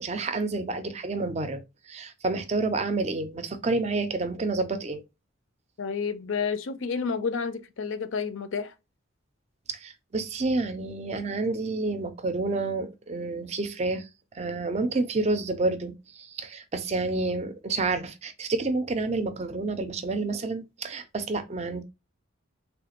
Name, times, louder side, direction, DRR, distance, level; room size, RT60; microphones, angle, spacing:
voice 1, 0.0-1.6 1.9-5.0 9.7-14.1 14.3-21.8, right 3 dB, 30° right, 0.4 m, -29 dB
voice 2, 5.8-8.7, left 5 dB, 70° left, 0.5 m, -30 dB
3.4 x 2.4 x 2.9 m
head